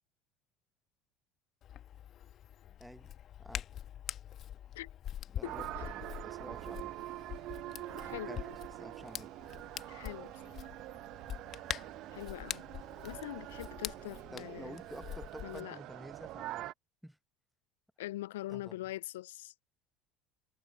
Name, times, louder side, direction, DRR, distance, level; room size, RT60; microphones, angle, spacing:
Hands, 1.6-15.6, left 11 dB, 50° left, 1.5 m, -45 dB
voice 1, 2.8-3.1 3.4-3.7 5.3-6.9 8.0-8.5 8.8-9.3 14.3-16.7 17.0-17.2 18.5-18.8, equal, ahead, 1.3 m, -50 dB
voice 2, 5.4-5.9 7.7-8.6 9.9-10.6 12.1-12.6 13.0-14.8 15.4-15.8 18.0-19.5, left 16 dB, 75° left, 0.4 m, -43 dB
sound 1, 5.4-16.7, right 16 dB, 55° right, 1.1 m, -45 dB
figure-of-eight pair, 65°, 0 cm